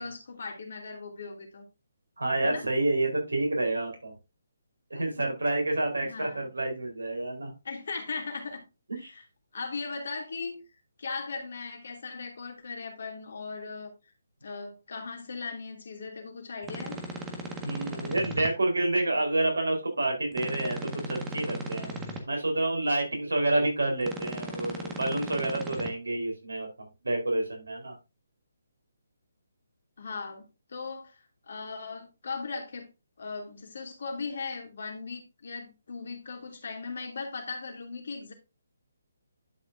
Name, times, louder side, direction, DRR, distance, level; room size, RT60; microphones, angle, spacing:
voice 1, 0.0-1.6 2.4-2.7 6.0-6.5 7.6-8.6 9.0-9.2 9.5-10.6 11.0-13.9 14.4-17.0 30.0-32.9 33.2-38.3, left 4 dB, 60° left, 2.7 m, -38 dB
voice 2, 2.2-4.2 4.9-7.5 9.0-9.1 17.6-21.9 22.3-27.9, right 2 dB, 80° right, 4.2 m, -29 dB
sound 1, 16.6-18.5 20.3-22.2 24.0-25.9, right 1 dB, 15° right, 1.6 m, -37 dB
11.5 x 5.8 x 2.7 m
figure-of-eight pair, 145°, 0 cm